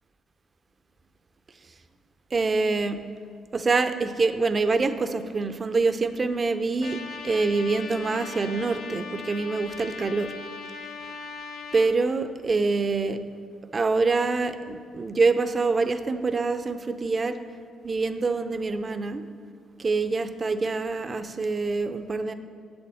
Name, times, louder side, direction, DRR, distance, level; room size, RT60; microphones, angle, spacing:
voice 1, 2.3-3.0 3.5-7.0 7.2-10.3 11.7-13.2 13.7-17.4 17.8-19.2 19.8-22.3, right 3 dB, 35° right, 9 dB, 0.6 m, -25 dB
Trumpet, 6.8-11.9, left 4 dB, 70° left, 0.9 m, -39 dB
7.9 x 7.0 x 7.6 m, 2.1 s
supercardioid pair, 65°, 0 cm